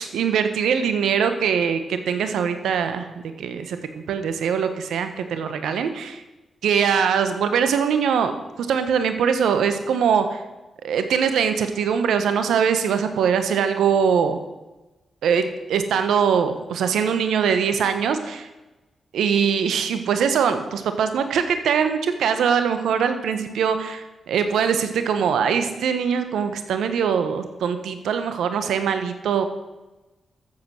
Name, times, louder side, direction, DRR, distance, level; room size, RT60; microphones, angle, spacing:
voice 1, 0.0-3.1 3.4-3.8 4.1-6.2 6.6-8.3 8.6-10.4 10.8-14.4 15.2-18.5 19.1-29.4, right 7 dB, 80° right, 9 dB, 1.2 m, -22 dB
13.5 x 7.9 x 6.4 m, 1.1 s
supercardioid pair, 40°, 0 cm